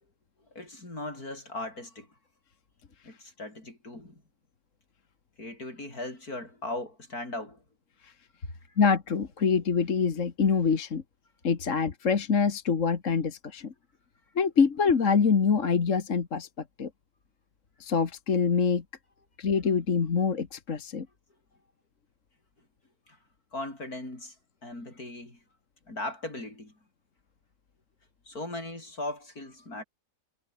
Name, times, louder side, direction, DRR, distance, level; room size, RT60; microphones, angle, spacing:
voice 1, 0.5-2.1 3.0-4.2 5.4-7.6 8.7-8.8 23.1-23.2 23.5-24.4 24.6-25.4 25.9-26.7 28.3-29.8, left 2 dB, 80° left, 8.0 m, -38 dB
voice 2, 8.8-11.0 11.4-13.7 14.4-16.5 16.8-16.9 17.8-18.8 19.4-21.1, left 5 dB, 55° left, 2.0 m, -25 dB
omnidirectional pair, 1.6 m